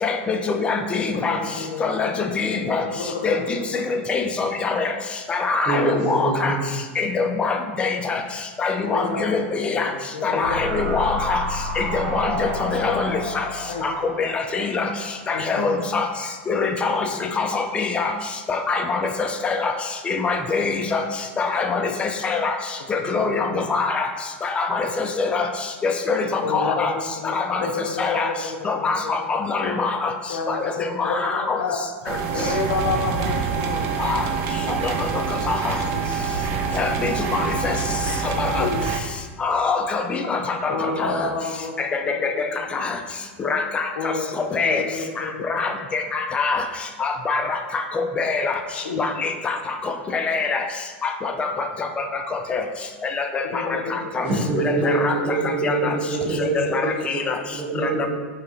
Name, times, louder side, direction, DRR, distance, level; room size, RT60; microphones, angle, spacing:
voice 1, 0.0-1.4 1.8-2.8 3.2-4.9 5.3-6.6 7.0-8.2 8.6-9.9 10.2-11.4 11.8-13.4 13.8-13.9 14.2-14.9 15.3-16.1 16.5-17.1 17.4-18.1 18.5-19.7 20.1-21.0 21.4-22.6 22.9-24.1 24.4-25.5 25.8-26.9 27.3-27.7 28.0-28.3 28.7-30.1 30.5-30.6 31.0-31.6 34.0-34.2 34.8-35.1 35.5-35.7 36.8-37.7 38.4-38.7 39.4-40.7 41.0-41.2 42.1-42.5 42.7-43.0 43.4-43.9 44.4-44.8 45.5-46.6 47.0-47.6 47.9-48.5 49.0-49.6 49.8-50.6 51.0-51.5 52.5-52.6 53.2-53.6 53.9-54.3 54.6-55.1 55.6-55.9 56.4-57.3, left 4 dB, 15° left, 5 dB, 0.3 m, -24 dB
voice 2, 1.0-4.0 5.7-5.8 8.9-9.4 9.7-10.9 13.7-13.8 15.3-15.7 23.0-23.6 26.4-29.3 30.3-31.8 32.3-34.0 34.8-34.9 35.9-36.1 38.6-38.9 40.7-41.7 42.0-42.3 44.0-44.3 44.6-45.7 48.7-49.1 53.5-54.1 54.7-55.2 56.1-56.3 57.1-57.3, left 4 dB, 80° left, 3 dB, 0.5 m, -30 dB
voice 3, 5.7-6.7 54.2-57.2 57.5-58.1, right 3 dB, 30° right, -8 dB, 1.0 m, -24 dB
sound 1, 10.4-15.7 16.0-16.1, equal, 80° right, 0.8 m, -30 dB
sound 2, 32.0-39.0, right 5 dB, 45° right, 0.4 m, -26 dB
4.4 x 2.8 x 2.5 m, 1.4 s
supercardioid pair, 125°, 7 cm